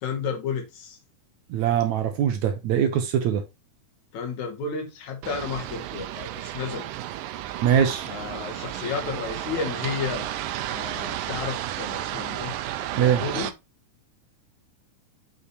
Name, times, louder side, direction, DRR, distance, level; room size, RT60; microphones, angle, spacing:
voice 1, 0.0-1.0 4.1-6.9 8.1-10.3 10.7-13.5, left 6 dB, 65° left, 2.5 m, -32 dB
voice 2, 1.5-3.4 7.6-8.1 13.0-13.2, right 9 dB, 70° right, 2.0 m, -22 dB
sound 1, 5.2-13.5, right 13 dB, 85° right, 2.3 m, -32 dB
6.6 x 5.4 x 3.1 m
omnidirectional pair, 3.8 m